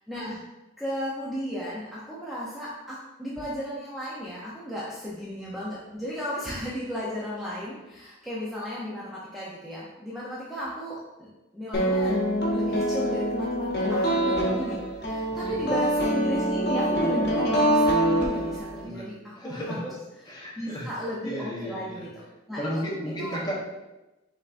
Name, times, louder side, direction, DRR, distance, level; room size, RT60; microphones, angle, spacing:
voice 1, 0.1-0.4 0.8-12.1 12.5-19.9 20.6-22.1 22.5-22.7 23.2-23.4, equal, ahead, -8 dB, 0.6 m, -34 dB
sound 1, 11.7-18.8, right 1 dB, 55° left, 0.9 m, -25 dB
voice 2, 19.4-19.8 20.3-20.9 21.2-22.1 22.6-23.6, equal, 20° left, -4 dB, 0.9 m, -33 dB
5.7 x 3.5 x 2.5 m, 1.0 s
head